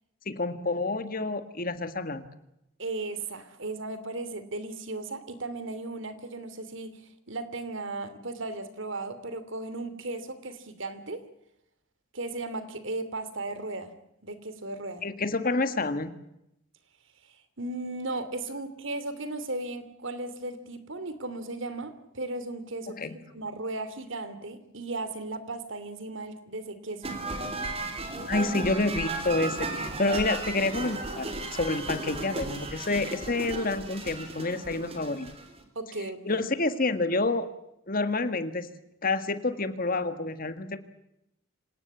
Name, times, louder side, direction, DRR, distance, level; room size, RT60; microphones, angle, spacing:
voice 1, 0.2-2.2 15.0-16.2 23.0-23.2 28.3-35.3 36.2-37.5 37.9-38.7 39.0-40.8, left 2 dB, 40° left, 11 dB, 1.7 m, -28 dB
voice 2, 2.8-7.0 7.3-11.2 12.1-13.9 14.2-15.1 17.3-27.1 28.3-28.5 35.7-36.5, right 2 dB, 60° right, 13 dB, 2.9 m, -36 dB
sound 1, 27.0-35.6, right 2 dB, 25° right, 3.9 m, -35 dB
26.5 x 18.5 x 8.4 m, 0.82 s
head